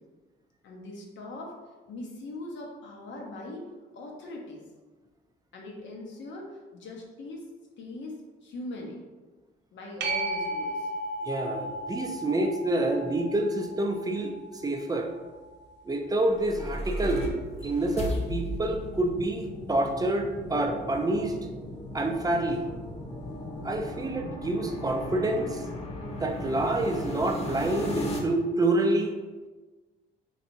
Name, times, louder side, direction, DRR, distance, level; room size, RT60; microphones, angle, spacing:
voice 1, 0.6-1.5 1.9-3.6 3.9-4.6 5.5-7.4 7.8-9.0 9.7-10.9, left 2 dB, 70° left, -1 dB, 0.8 m, -41 dB
sound 1, 10.0-17.2 22.7-22.8, right 1 dB, 60° right, 0.6 m, -36 dB
voice 2, 11.2-15.1 15.9-17.4 17.6-21.4 21.9-22.6 23.6-25.6 26.2-29.1, right 2 dB, 20° right, 3 dB, 0.4 m, -27 dB
sound 2, 16.2-28.2, equal, 30° left, 0.6 m, -36 dB
3.3 x 2.7 x 2.6 m, 1.3 s
cardioid pair, 90°, 20 cm